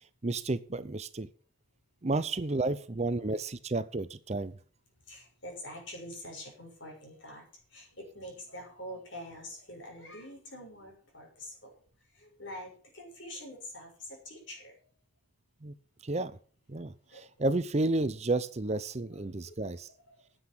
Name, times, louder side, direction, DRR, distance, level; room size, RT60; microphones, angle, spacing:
voice 1, 0.2-1.3 2.0-4.6 15.6-15.7 16.0-16.4 16.7-19.9, right 2 dB, 35° right, 14 dB, 0.7 m, -31 dB
voice 2, 5.1-11.8 12.1-14.8 17.0-17.3 19.1-20.2, left 1 dB, 65° left, 1 dB, 6.3 m, -46 dB
9.7 x 8.0 x 8.6 m, 0.43 s
head